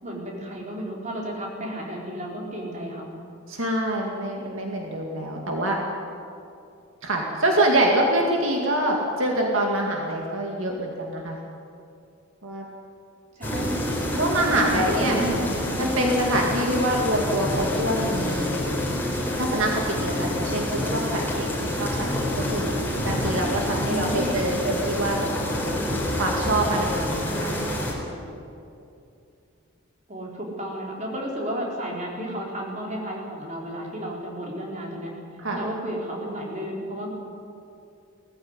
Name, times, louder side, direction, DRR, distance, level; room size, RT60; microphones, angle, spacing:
voice 1, 0.0-3.1 13.3-13.8 14.9-15.4 16.5-16.6 23.8-24.7 30.1-35.1 35.5-37.1, right 1 dB, 35° right, -2 dB, 4.3 m, -32 dB
voice 2, 3.5-5.8 7.0-11.4 12.4-12.6 14.2-15.2 15.8-18.6 19.4-22.7 23.0-25.7 26.1-27.8 35.4-35.6, right 1 dB, 70° right, 0 dB, 2.3 m, -25 dB
sound 1, 13.4-27.9, left 1 dB, 10° left, 4.1 m, -27 dB
19.0 x 15.0 x 9.7 m, 2.6 s
head